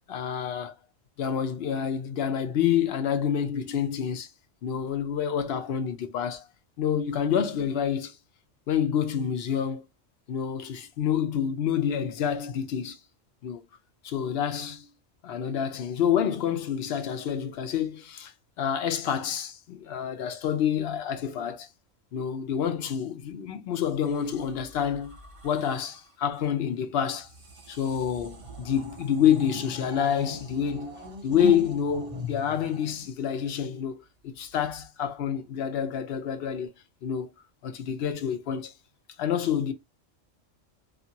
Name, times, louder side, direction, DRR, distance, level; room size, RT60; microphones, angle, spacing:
voice 1, 0.1-0.7 1.2-4.3 4.6-6.5 6.8-8.2 8.7-9.8 10.3-13.0 13.4-13.6 14.0-14.9 15.2-18.3 18.6-21.7 22.1-25.2 25.4-27.3 27.7-36.7 37.0-37.3 37.6-38.7 39.2-39.7, left 8 dB, 60° left, 0.7 m, -28 dB
sound 1, 24.0-26.1 27.2-33.6 34.5-34.8, left 1 dB, 35° right, 0.6 m, -40 dB
2.7 x 2.5 x 2.7 m
omnidirectional pair, 1.3 m